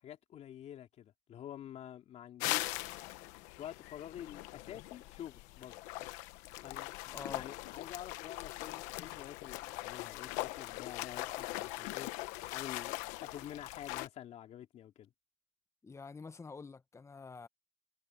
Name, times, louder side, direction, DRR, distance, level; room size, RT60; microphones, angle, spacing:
voice 1, 0.0-3.0 3.6-5.8 6.6-12.1 12.4-15.1, left 11 dB, 60° left, 2.5 m, -48 dB
sound 1, 2.4-14.1, left 19 dB, 90° left, 1.2 m, -41 dB
voice 2, 7.1-7.4 15.8-17.5, left 4 dB, 20° left, 1.0 m, -47 dB
supercardioid pair, 85°, 13 cm